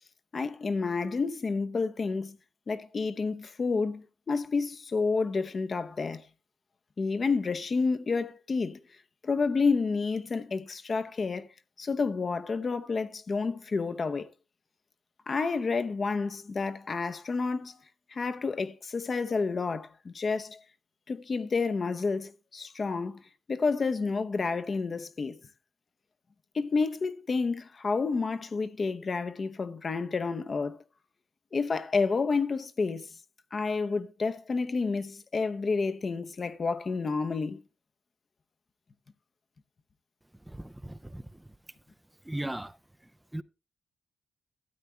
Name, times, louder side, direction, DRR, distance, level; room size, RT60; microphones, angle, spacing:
voice 1, 0.3-2.4 2.7-6.2 7.0-8.8 9.2-11.5 11.8-14.3 15.3-17.8 18.1-20.6 21.1-23.2 23.5-25.4 26.5-30.8 31.5-33.1 33.5-37.6, left 4 dB, 45° left, 0.8 m, -30 dB
voice 2, 40.5-41.3 42.3-42.8 43.3-43.4, right 1 dB, 10° right, 0.4 m, -37 dB
12.5 x 8.3 x 3.3 m
cardioid pair, 80°, 0 cm